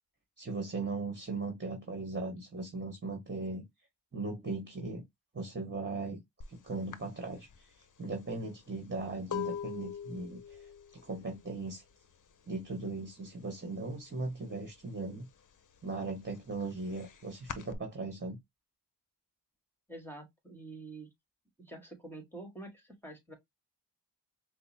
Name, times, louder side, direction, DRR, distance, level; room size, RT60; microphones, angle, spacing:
voice 1, 0.4-3.7 4.1-5.0 5.3-6.2 6.5-7.7 8.0-10.7 11.0-11.8 12.5-15.3 15.8-18.4, right 3 dB, 25° right, 1.4 m, -38 dB
sound 1, 6.4-6.6 6.9-12.6 12.9-13.4 13.7-14.8 15.2-17.8, left 8 dB, 45° left, 0.6 m, -42 dB
voice 2, 19.9-21.1 21.6-23.3, right 2 dB, 5° left, 1.5 m, -47 dB
5.3 x 2.1 x 2.7 m
cardioid pair, 60°, 44 cm